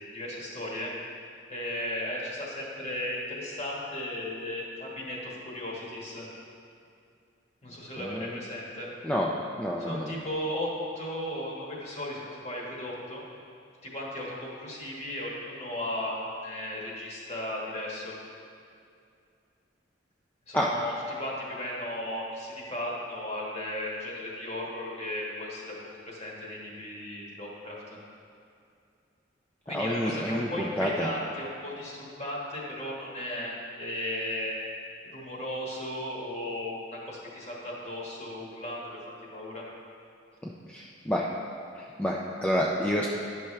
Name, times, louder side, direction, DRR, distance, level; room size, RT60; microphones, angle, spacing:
voice 1, 0.1-0.9 1.5-6.3 7.6-8.9 9.8-10.7 10.9-13.2 13.8-18.1 20.5-25.7 26.0-28.0 29.6-33.5 33.8-34.5 35.1-39.0 39.3-39.6, left 1 dB, 35° left, -4 dB, 1.4 m, -35 dB
voice 2, 8.0-8.4 9.0-9.3 9.6-10.1 20.5-20.7 29.7-31.1 40.4-41.3 41.8-43.1, equal, 5° left, -3 dB, 0.4 m, -29 dB
10.5 x 5.7 x 3.2 m, 2.4 s
head